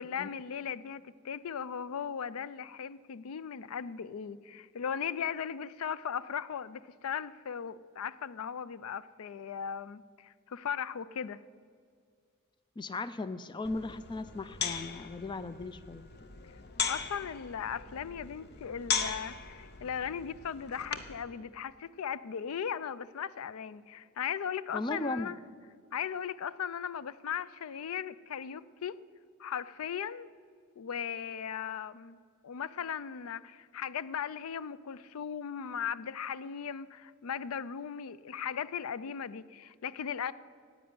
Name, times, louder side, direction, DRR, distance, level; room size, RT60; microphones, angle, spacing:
voice 1, 0.0-11.4 16.9-25.4 25.9-29.0 29.4-30.3 30.8-32.2 32.4-40.3, left 7 dB, 85° left, 17 dB, 0.4 m, -37 dB
voice 2, 12.8-16.0 24.7-25.3, left 2 dB, 20° left, 14 dB, 0.4 m, -37 dB
sound 1, 13.6-21.2, left 6 dB, 50° left, 0.8 m, -38 dB
10.5 x 8.5 x 9.5 m, 2.1 s
head